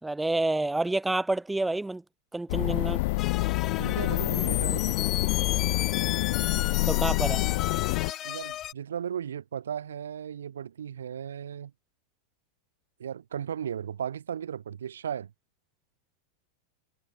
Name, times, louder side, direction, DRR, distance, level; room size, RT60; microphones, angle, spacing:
voice 1, 0.0-2.0 2.3-3.0 6.9-7.4, right 2 dB, 5° right, 3.7 m, -28 dB
sound 1, 2.5-8.1, left 24 dB, 50° left, 2.9 m, -27 dB
sound 2, 3.2-8.7, left 12 dB, 30° left, 2.5 m, -34 dB
voice 2, 3.8-5.0 8.2-11.7 13.0-15.3, right 8 dB, 65° right, 5.6 m, -36 dB
figure-of-eight pair, 90°, 0 cm